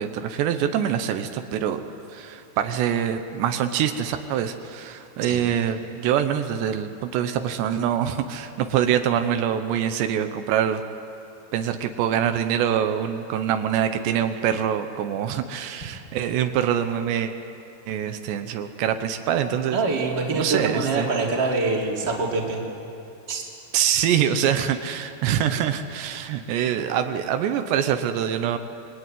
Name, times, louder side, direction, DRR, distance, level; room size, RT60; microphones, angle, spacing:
voice 1, 0.0-1.8 2.1-10.8 11.5-17.3 17.9-19.8 20.3-21.1 23.7-28.6, right 9 dB, 80° right, 7 dB, 3.2 m, -24 dB
voice 2, 19.7-22.6 23.3-23.4, right 3 dB, 25° right, -1 dB, 3.3 m, -25 dB
27.0 x 22.0 x 9.1 m, 2.8 s
omnidirectional pair, 5.0 m